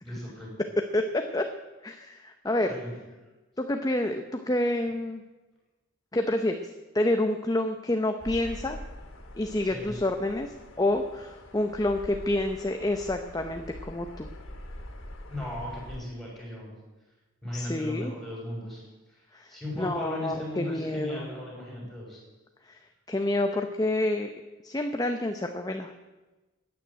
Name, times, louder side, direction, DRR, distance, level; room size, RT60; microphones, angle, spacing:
voice 1, 0.0-0.5 2.6-2.9 9.6-9.9 15.3-16.7 17.4-22.2, left 1 dB, ahead, -5 dB, 6.6 m, -37 dB
voice 2, 0.6-1.5 1.8-2.7 3.6-5.2 6.1-6.7 6.9-8.8 9.3-14.3 17.5-18.1 19.3-21.3 22.6-22.8 23.1-24.3 24.6-25.9, left 1 dB, 20° left, 5 dB, 0.7 m, -28 dB
sound 1, 8.2-16.0, left 1 dB, 85° left, 2.5 m, -44 dB
14.5 x 9.6 x 8.9 m, 1.2 s
head